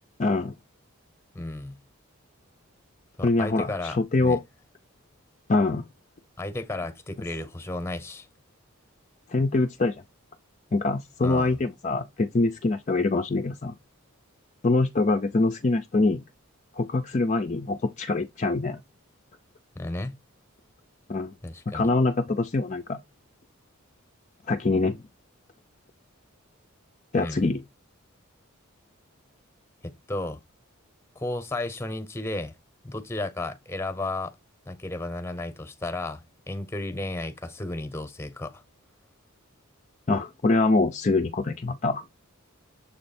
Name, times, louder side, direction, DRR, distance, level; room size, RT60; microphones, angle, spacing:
voice 1, 0.2-0.5 3.2-4.4 5.5-5.9 9.3-10.0 10.7-13.7 14.6-16.2 16.8-18.8 21.1-21.3 21.7-23.0 24.5-25.0 27.1-27.6 40.1-42.0, left 3 dB, 35° left, 0.5 m, -24 dB
voice 2, 1.3-1.8 3.2-4.4 6.4-8.3 11.2-11.6 19.7-20.2 21.4-21.9 27.1-27.6 29.8-30.4 31.1-32.5 32.8-34.3 34.7-38.6, left 2 dB, 10° left, 0.9 m, -33 dB
7.1 x 3.2 x 4.2 m
head